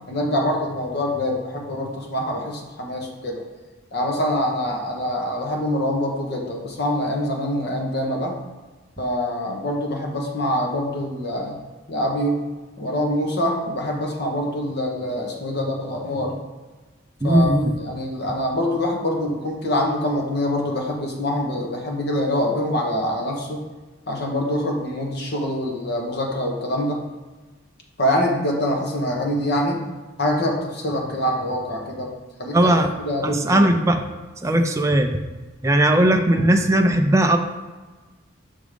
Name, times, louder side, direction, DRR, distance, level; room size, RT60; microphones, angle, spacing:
voice 1, 0.1-3.4 3.9-8.4 9.0-11.6 11.9-12.4 12.8-16.4 17.2-17.5 17.8-23.6 24.1-27.0 28.0-29.8 30.2-32.1 32.4-32.7 33.0-33.7, left 1 dB, 55° left, 0 dB, 1.2 m, -25 dB
voice 2, 17.2-17.7 32.5-32.9 33.2-34.0 34.4-35.2 35.6-37.4, right 1 dB, 15° right, 4 dB, 0.4 m, -18 dB
6.1 x 3.7 x 5.1 m, 1.2 s
head